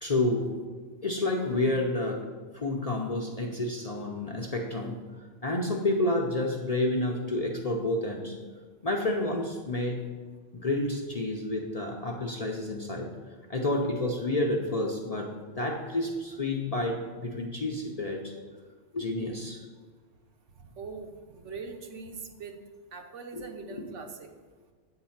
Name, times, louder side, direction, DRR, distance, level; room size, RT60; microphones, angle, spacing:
voice 1, 0.0-0.6 1.0-2.3 2.5-5.0 5.4-8.4 8.8-10.0 10.5-13.1 13.5-18.3 18.9-19.6 23.3-23.8, left 2 dB, 40° left, 0 dB, 0.6 m, -30 dB
voice 2, 20.7-22.6 22.9-24.3, right 4 dB, 75° right, 4 dB, 1.1 m, -42 dB
8.5 x 3.9 x 5.7 m, 1.5 s
omnidirectional pair, 1.3 m